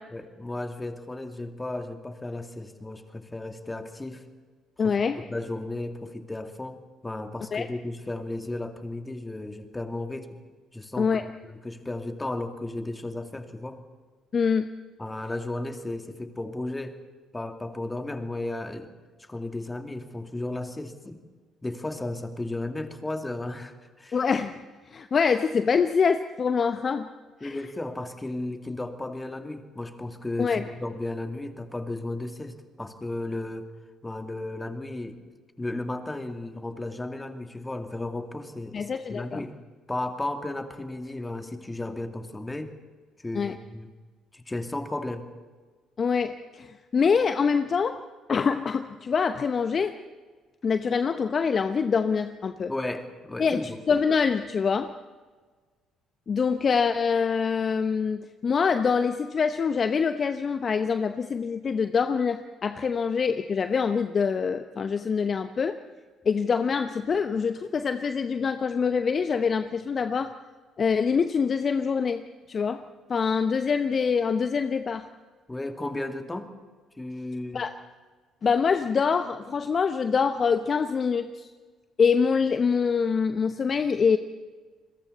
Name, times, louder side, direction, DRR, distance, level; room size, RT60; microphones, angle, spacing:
voice 1, 0.1-4.2 4.8-6.8 7.0-10.4 10.7-13.8 15.0-17.0 17.3-18.9 19.3-21.2 21.6-24.2 27.4-33.7 34.0-35.2 35.6-39.5 39.9-42.7 43.2-43.9 44.3-45.2 52.7-53.8 75.5-76.5 77.0-77.7, left 2 dB, 15° left, 7 dB, 2.5 m, -34 dB
voice 2, 4.8-5.2 7.5-7.7 11.0-11.3 14.3-14.7 24.1-24.6 24.9-27.1 27.4-27.6 30.4-30.6 38.7-39.4 43.3-43.5 46.0-48.0 48.3-50.0 50.6-52.7 53.4-54.9 56.3-65.8 66.2-70.3 70.8-72.8 73.1-75.1 77.5-77.8 78.4-81.5 82.0-84.2, left 6 dB, 45° left, 10 dB, 0.9 m, -25 dB
30.0 x 21.5 x 4.2 m, 1.4 s
hypercardioid pair, 50°, 0 cm